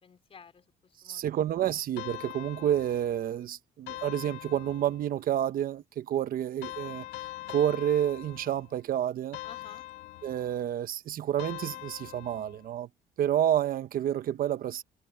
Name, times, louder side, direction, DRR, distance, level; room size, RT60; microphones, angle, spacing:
voice 1, 0.0-1.7 9.4-9.9, left 6 dB, 35° left, 4.6 m, -53 dB
voice 2, 1.0-7.1 7.5-9.4 10.2-12.9 13.2-14.8, right 11 dB, 60° right, 1.0 m, -29 dB
sound 1, 2.0-3.3 3.9-5.2 6.6-8.8 9.3-10.6 11.4-12.7, left 16 dB, 85° left, 1.4 m, -43 dB
cardioid pair, 110°, 17 cm